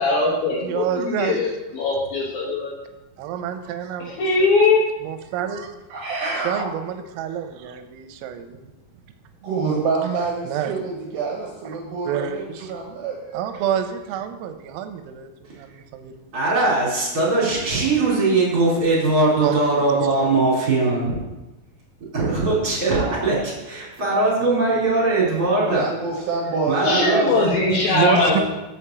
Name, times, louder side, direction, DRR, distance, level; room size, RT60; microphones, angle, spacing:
voice 1, 0.0-2.7 4.0-4.8 26.8-28.4, left 3 dB, 70° left, -3 dB, 2.2 m, -21 dB
voice 2, 0.6-1.4 3.2-4.5 5.0-5.8 6.4-8.7 10.5-10.7 12.0-12.7 13.3-16.1 19.4-20.4 27.9-28.4, right 9 dB, 90° right, 8 dB, 3.3 m, -28 dB
voice 3, 5.9-6.7 9.4-13.4 25.6-27.8 28.1-28.4, right 4 dB, 75° right, -1 dB, 2.7 m, -27 dB
voice 4, 16.3-21.2 22.1-25.9 26.7-27.2, right 2 dB, 25° right, -6 dB, 2.8 m, -20 dB
6.8 x 5.6 x 7.4 m, 1.0 s
omnidirectional pair, 6.0 m